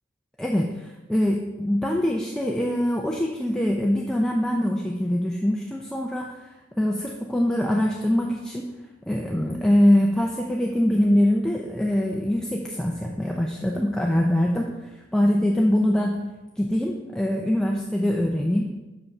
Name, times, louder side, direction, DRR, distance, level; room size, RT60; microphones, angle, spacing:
voice 1, 0.4-6.3 6.8-8.7 9.1-14.8 15.1-16.2 16.6-18.7, left 1 dB, 5° left, -1 dB, 0.5 m, -23 dB
7.0 x 5.7 x 5.4 m, 1.1 s
head